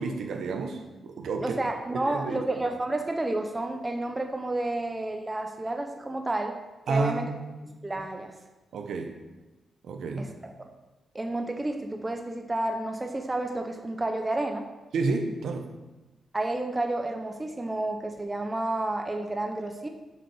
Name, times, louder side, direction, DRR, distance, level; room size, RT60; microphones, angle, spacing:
voice 1, 0.0-1.6 2.1-2.4 6.9-7.6 8.7-9.2 9.8-10.3 14.9-15.7, right 4 dB, 75° right, 4 dB, 1.1 m, -30 dB
voice 2, 1.4-6.5 6.9-7.3 7.8-8.3 10.2-10.7 11.1-14.6 16.3-19.9, right 2 dB, 15° right, 4 dB, 0.8 m, -30 dB
7.2 x 6.6 x 6.3 m, 1.1 s
wide cardioid pair, 130°, 0 cm